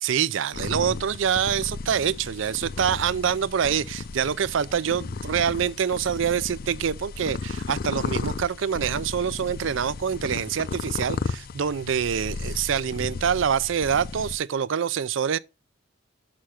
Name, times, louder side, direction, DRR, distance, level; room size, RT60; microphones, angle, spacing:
voice 1, 0.0-15.4, right 7 dB, 65° right, 0.4 m, -25 dB
sound 1, 0.5-14.4, left 4 dB, 45° left, 0.4 m, -34 dB
6.3 x 5.6 x 6.3 m
head